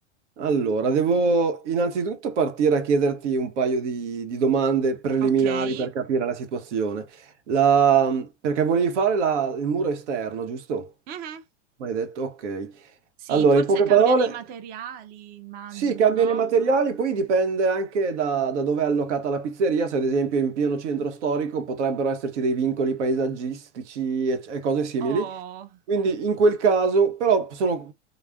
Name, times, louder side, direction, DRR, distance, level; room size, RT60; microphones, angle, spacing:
voice 1, 0.4-10.9 11.8-12.7 13.3-14.3 15.7-25.3 25.9-27.9, right 5 dB, 80° right, 0.8 m, -23 dB
voice 2, 5.2-5.9 11.1-11.5 13.2-16.5 25.0-25.8, right 9 dB, 25° right, 0.4 m, -37 dB
2.4 x 2.0 x 3.3 m
hypercardioid pair, 115°, 35 cm